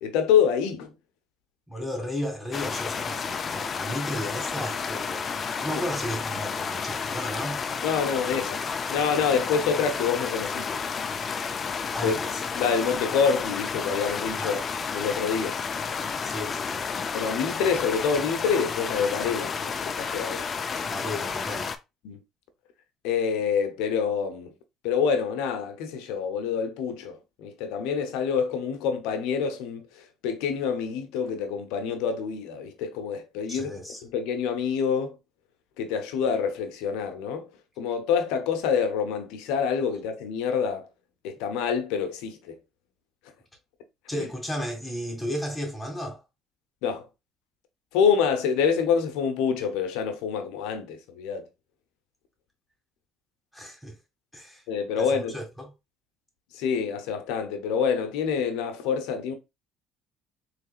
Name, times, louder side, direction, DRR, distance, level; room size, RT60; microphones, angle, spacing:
voice 1, 0.0-0.9 5.7-5.8 7.8-8.6 8.9-10.8 12.0-12.2 12.6-14.6 14.9-15.6 17.1-20.5 22.0-22.2 23.0-24.5 24.8-33.7 34.0-35.2 35.8-37.5 37.8-40.9 41.2-42.6 44.1-44.3 46.8-47.1 47.9-51.5 54.7-55.4 56.5-59.3, left 6 dB, 80° left, 0.8 m, -26 dB
voice 2, 1.7-7.6 11.9-12.4 14.4-14.6 16.2-17.0 20.9-21.7 33.5-34.0 44.1-46.2 53.5-54.0 54.3-54.6 55.0-55.7, equal, 5° left, 1.9 m, -34 dB
sound 1, 2.5-21.8, left 5 dB, 40° left, 0.4 m, -31 dB
3.8 x 3.3 x 2.4 m
supercardioid pair, 85°, 0 cm